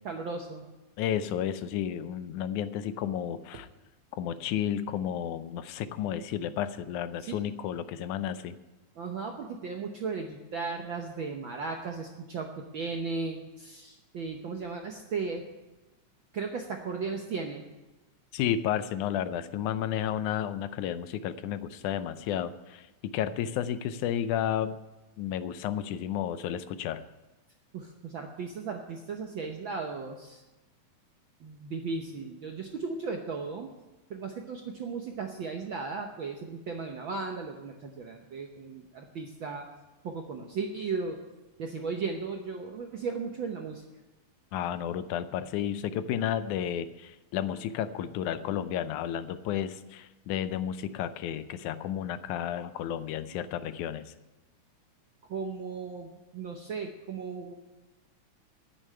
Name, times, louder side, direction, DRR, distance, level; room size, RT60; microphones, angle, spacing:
voice 1, 0.0-0.6 7.2-7.4 9.0-15.5 16.3-17.6 21.4-21.6 27.7-30.4 31.4-33.7 34.1-39.7 40.0-41.2 41.6-43.8 53.3-53.5 55.3-57.5, right 4 dB, 70° right, 3 dB, 1.2 m, -36 dB
voice 2, 1.0-3.7 4.1-8.6 18.3-24.8 25.2-27.0 44.5-54.1, left 10 dB, 90° left, 13 dB, 2.1 m, -32 dB
9.9 x 8.8 x 10.0 m, 1.1 s
omnidirectional pair, 3.4 m